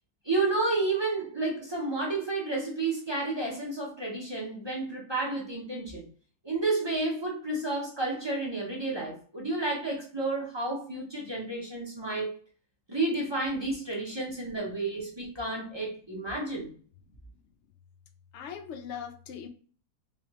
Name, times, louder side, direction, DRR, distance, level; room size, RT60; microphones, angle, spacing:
voice 1, 0.2-6.0 6.4-12.3 12.9-16.7, right 2 dB, 25° right, -2 dB, 0.6 m, -31 dB
voice 2, 18.3-19.5, left 8 dB, 70° left, 7 dB, 0.7 m, -40 dB
3.2 x 3.1 x 3.0 m, 0.43 s
omnidirectional pair, 1.7 m